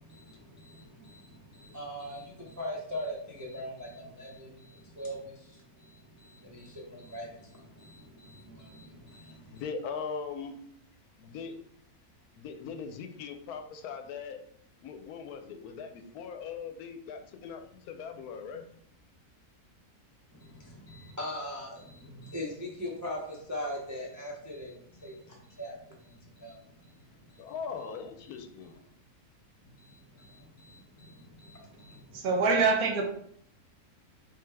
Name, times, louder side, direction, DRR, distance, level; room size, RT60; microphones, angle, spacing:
voice 1, 0.0-9.6 20.3-26.9 27.3-27.5 28.3-28.4 29.8-32.2, left 1 dB, 30° right, -3 dB, 0.3 m, -42 dB
voice 2, 9.5-10.6 11.2-11.5 12.4-14.4 14.8-18.7 27.4-28.8, left 6 dB, 80° left, 7 dB, 1.0 m, -40 dB
voice 3, 32.1-33.0, right 4 dB, 70° right, 3 dB, 1.2 m, -24 dB
3.7 x 3.3 x 3.3 m, 0.66 s
omnidirectional pair, 1.6 m